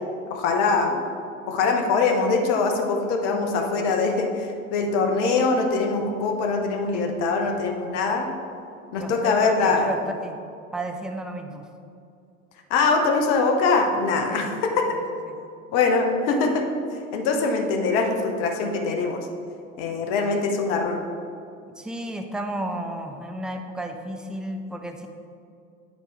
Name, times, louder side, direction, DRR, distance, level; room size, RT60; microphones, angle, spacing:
voice 1, 0.3-1.0 1.5-8.3 8.9-9.9 12.7-15.0 15.7-16.6 17.1-19.2 19.8-21.0, left 4 dB, 65° left, 4 dB, 1.0 m, -23 dB
voice 2, 8.9-10.4 10.7-11.7 14.3-14.5 14.9-15.3 21.8-25.1, right 1 dB, ahead, 5 dB, 0.6 m, -33 dB
9.4 x 4.6 x 3.8 m, 2.5 s
hypercardioid pair, 80°, 39 cm